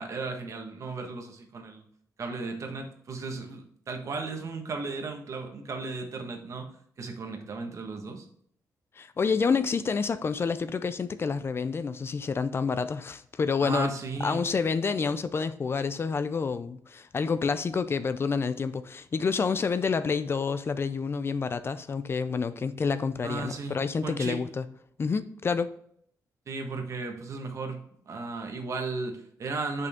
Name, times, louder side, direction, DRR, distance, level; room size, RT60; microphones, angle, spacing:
voice 1, 0.0-1.8 2.2-6.7 7.0-8.3 13.6-14.4 23.2-24.4 26.5-29.9, right 3 dB, 55° right, 1.3 m, -35 dB
voice 2, 9.0-13.9 14.2-24.6 25.0-25.7, left 5 dB, 40° left, 0.4 m, -28 dB
6.6 x 5.4 x 3.5 m
cardioid pair, 100°, 6 cm